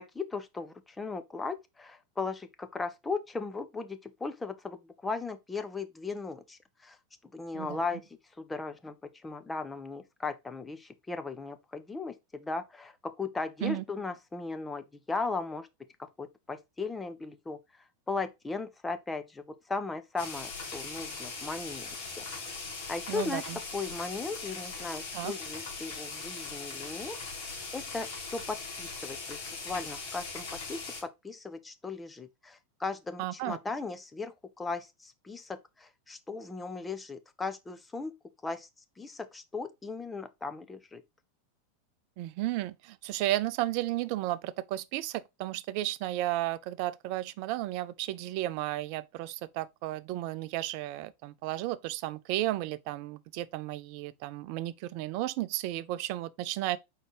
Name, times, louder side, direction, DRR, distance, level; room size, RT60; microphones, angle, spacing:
voice 1, 0.0-7.0 7.3-8.0 8.4-8.9 9.2-15.7 16.2-17.6 18.1-22.2 22.9-23.5 23.7-38.1 38.4-38.7 39.0-41.0, left 4 dB, 15° left, 0.8 m, -37 dB
sound 1, 20.2-31.0, left 4 dB, 55° left, 2.4 m, -40 dB
voice 2, 23.1-23.6 25.1-25.3 33.2-33.6 42.2-56.8, right 15 dB, 50° right, 0.5 m, -33 dB
4.6 x 4.2 x 4.9 m
figure-of-eight pair, 85°, 0 cm